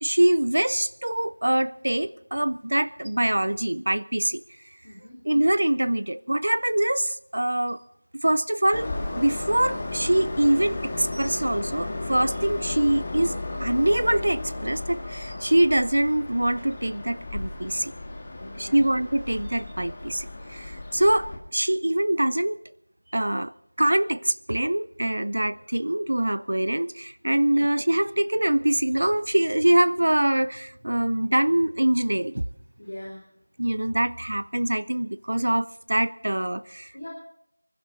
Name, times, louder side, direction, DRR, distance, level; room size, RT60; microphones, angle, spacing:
voice 1, 0.0-4.4 5.2-7.8 8.1-8.9 9.2-17.9 18.6-22.6 23.1-23.5 23.8-32.4 33.6-36.9, right 1 dB, 55° right, 16 dB, 0.5 m, -24 dB
voice 2, 4.8-5.2 18.4-18.8 27.3-27.6 32.8-33.2 36.9-37.1, left 1 dB, 50° left, -1 dB, 3.8 m, -41 dB
Train, 8.7-21.4, left 2 dB, 20° left, 1.8 m, -34 dB
25.5 x 12.0 x 4.1 m, 0.72 s
figure-of-eight pair, 175°, 0 cm